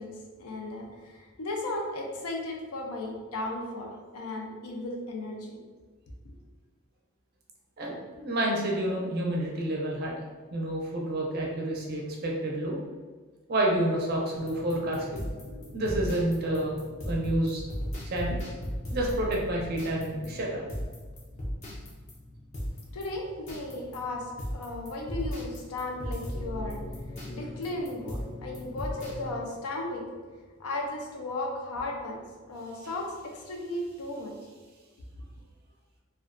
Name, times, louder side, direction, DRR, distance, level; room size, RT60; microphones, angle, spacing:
voice 1, 0.0-5.6 6.2-6.3 22.9-26.8 27.3-30.1 30.6-34.3, left 2 dB, 85° left, 1 dB, 0.5 m, -35 dB
voice 2, 7.8-10.2 10.5-12.8 13.5-15.3 15.7-16.8 17.0-17.7 18.1-18.4 18.9-20.6, right 1 dB, 45° right, -1 dB, 0.4 m, -29 dB
sound 1, 14.3-29.4, equal, 30° left, 0.4 m, -38 dB
2.4 x 2.2 x 2.4 m, 1.4 s
head